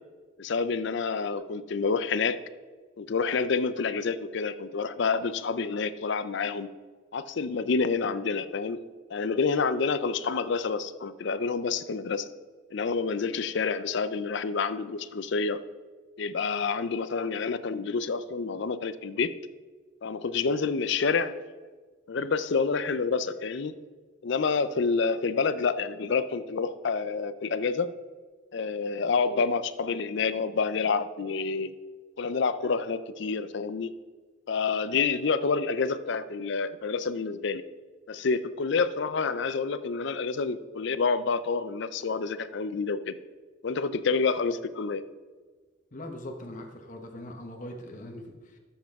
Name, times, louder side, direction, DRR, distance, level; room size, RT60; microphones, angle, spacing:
voice 1, 0.4-2.4 3.0-6.7 7.1-8.8 9.1-12.3 12.7-15.6 16.2-19.3 20.0-21.4 22.1-23.7 24.2-27.9 28.5-31.7 32.2-33.9 34.5-37.6 38.1-43.2 43.6-45.0, left 5 dB, 60° left, 14 dB, 0.5 m, -28 dB
voice 2, 45.9-48.6, left 1 dB, 40° left, 3 dB, 1.0 m, -41 dB
13.0 x 7.3 x 3.6 m, 1.4 s
head